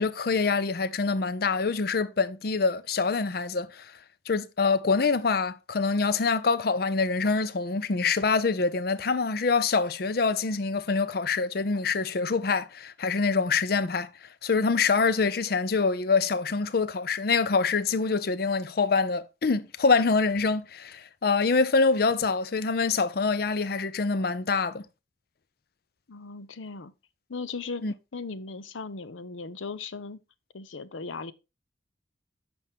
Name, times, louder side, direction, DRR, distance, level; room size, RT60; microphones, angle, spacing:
voice 1, 0.0-3.9 4.3-14.1 14.4-24.8 27.8-27.9, left 4 dB, 55° left, 0.5 m, -25 dB
voice 2, 26.1-26.9 27.3-27.8 28.1-30.2 30.5-31.3, left 4 dB, 90° left, 0.7 m, -37 dB
9.8 x 6.1 x 3.5 m
head